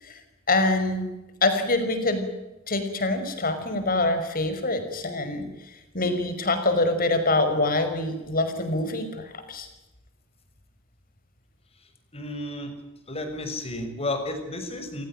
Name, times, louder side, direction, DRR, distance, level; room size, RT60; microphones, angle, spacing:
voice 1, 0.5-1.1 1.4-2.3 2.7-5.5 5.9-9.7, left 2 dB, 45° left, 8 dB, 5.8 m, -25 dB
voice 2, 12.1-12.7 13.1-15.1, left 2 dB, 30° left, 6 dB, 6.4 m, -32 dB
28.5 x 17.5 x 9.1 m, 0.98 s
head